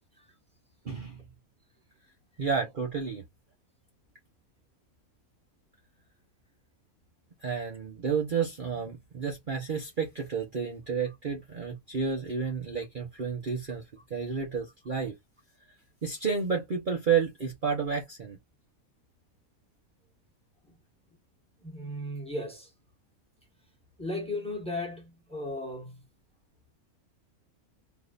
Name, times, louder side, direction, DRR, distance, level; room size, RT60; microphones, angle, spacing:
voice 1, 0.8-1.2 2.4-3.2 7.4-13.8 14.1-15.1 16.0-18.4, right 6 dB, 40° right, 1.0 m, -31 dB
voice 2, 21.6-22.7 24.0-26.0, left 1 dB, 5° left, 1.4 m, -36 dB
3.6 x 2.8 x 2.5 m
omnidirectional pair, 1.5 m